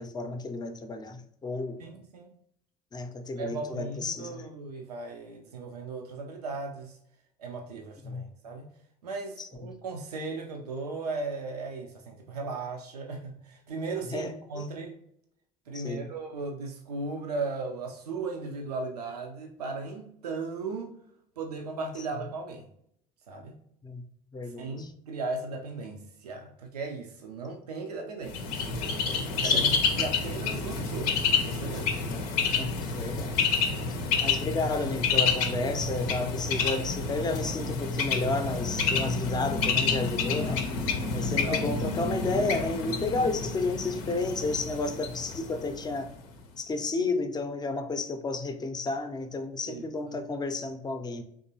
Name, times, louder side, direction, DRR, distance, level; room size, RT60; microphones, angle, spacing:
voice 1, 0.0-1.8 2.9-4.5 8.0-8.3 9.4-9.5 14.1-14.6 15.7-16.1 23.8-24.0 24.3-24.9 29.4-29.7 32.0-33.5 34.2-40.6 41.1-46.1 46.6-51.2, left 3 dB, 20° left, 0.5 m, -32 dB
voice 2, 1.8-2.3 3.4-7.0 7.4-8.7 9.0-14.9 15.7-20.9 21.4-22.7 23.3-23.5 24.6-28.9 29.3-31.9 40.4-41.7 49.7-50.2, right 3 dB, 90° right, 0.5 m, -37 dB
Bird, 28.3-46.0, left 5 dB, 75° left, 0.6 m, -29 dB
3.6 x 2.9 x 2.7 m
hypercardioid pair, 60°, 19 cm